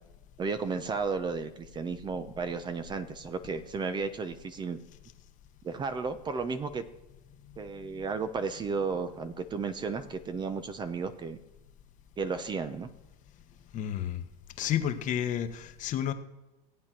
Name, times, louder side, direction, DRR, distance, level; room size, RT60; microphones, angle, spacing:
voice 1, 0.4-4.8 5.6-6.8 7.6-11.4 12.2-12.9, right 4 dB, 20° right, 10 dB, 1.0 m, -33 dB
voice 2, 13.7-14.2 14.6-16.1, left 10 dB, 40° left, 8 dB, 1.3 m, -31 dB
15.0 x 8.5 x 6.1 m, 1.0 s
supercardioid pair, 120°, 20 cm